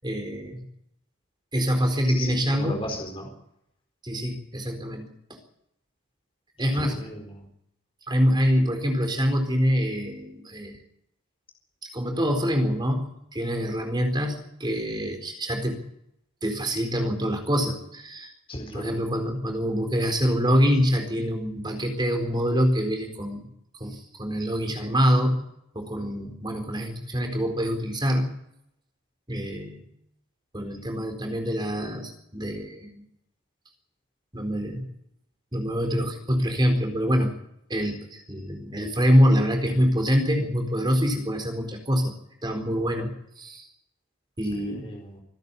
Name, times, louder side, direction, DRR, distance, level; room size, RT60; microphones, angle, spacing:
voice 1, 0.0-0.6 1.5-2.9 4.0-5.4 6.6-7.0 8.1-10.8 11.9-15.8 16.4-18.3 18.7-23.4 23.8-25.4 25.7-28.4 29.3-29.8 30.5-33.0 34.3-34.8 35.5-37.3 37.7-42.1 42.4-43.1 43.4-43.7 44.4-44.9, equal, 20° right, 5 dB, 4.2 m, -25 dB
voice 2, 2.1-3.3 6.8-7.5 18.5-18.9 44.4-45.2, left 1 dB, 25° left, 2 dB, 4.3 m, -36 dB
25.0 x 10.5 x 9.9 m, 0.78 s
head